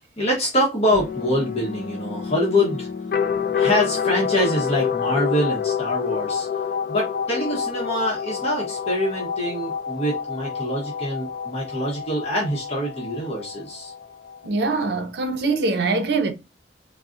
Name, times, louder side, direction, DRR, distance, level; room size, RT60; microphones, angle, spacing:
voice 1, 0.2-2.9 3.5-6.5 6.9-13.9, equal, 35° left, 0.8 m, -25 dB
sound 1, 0.9-14.5, left 7 dB, 50° left, 0.3 m, -28 dB
voice 2, 14.4-16.3, right 3 dB, 65° right, 0.5 m, -23 dB
3.8 x 2.0 x 2.4 m
head